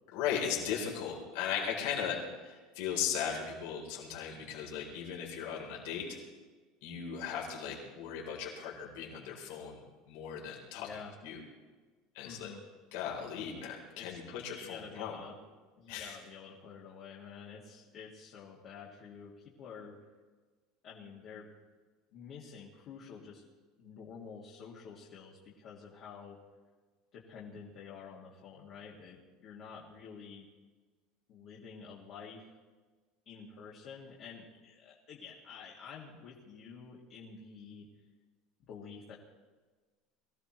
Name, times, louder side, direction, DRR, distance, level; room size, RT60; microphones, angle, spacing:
voice 1, 0.1-6.2 6.8-10.9 11.2-11.4 12.1-12.5 12.9-15.2 15.9-16.2, left 8 dB, 70° left, -2 dB, 3.7 m, -37 dB
voice 2, 10.7-11.1 12.2-12.6 14.0-15.4 15.8-20.0 20.8-21.5 22.1-23.4 23.8-26.4 27.1-30.5 31.3-32.6 33.3-37.9 38.7-39.1, left 6 dB, 40° left, -4 dB, 2.1 m, -49 dB
22.5 x 16.0 x 3.1 m, 1.4 s
cardioid pair, 170°, 0 cm